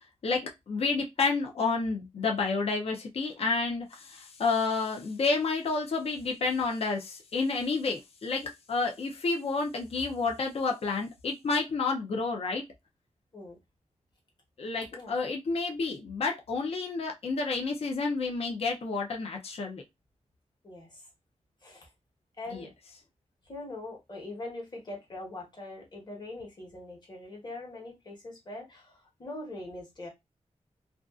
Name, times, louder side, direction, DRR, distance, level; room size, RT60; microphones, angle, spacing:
voice 1, 0.2-12.6 14.6-19.8 22.5-22.7, left 4 dB, 55° left, 0.5 m, -30 dB
voice 2, 20.6-21.0 21.6-21.9 22.4-22.7 23.5-30.1, left 2 dB, 35° left, 1.1 m, -42 dB
2.5 x 2.3 x 2.3 m
wide cardioid pair, 135°, 12 cm